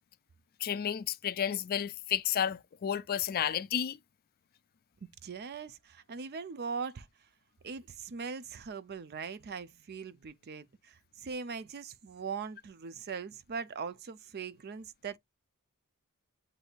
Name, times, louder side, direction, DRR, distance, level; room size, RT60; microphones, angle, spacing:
voice 1, 0.6-4.0, left 9 dB, 45° left, 0.4 m, -32 dB
voice 2, 5.2-7.3 7.6-15.2, right 5 dB, 45° right, 0.5 m, -41 dB
7.9 x 2.7 x 2.4 m
head